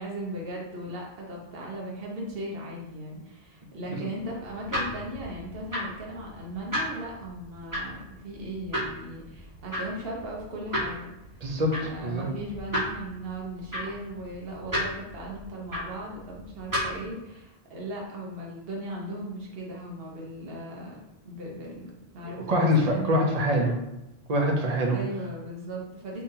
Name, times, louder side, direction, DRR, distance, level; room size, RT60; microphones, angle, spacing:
voice 1, 0.0-11.4 11.8-23.1 24.9-26.2, right 1 dB, 65° right, -2 dB, 1.1 m, -38 dB
sound 1, 4.2-17.1, equal, 20° right, 1.3 m, -35 dB
voice 2, 11.4-12.2 22.2-23.7 24.3-25.0, equal, 45° right, 0 dB, 0.7 m, -25 dB
3.7 x 2.9 x 2.7 m, 0.90 s
omnidirectional pair, 1.1 m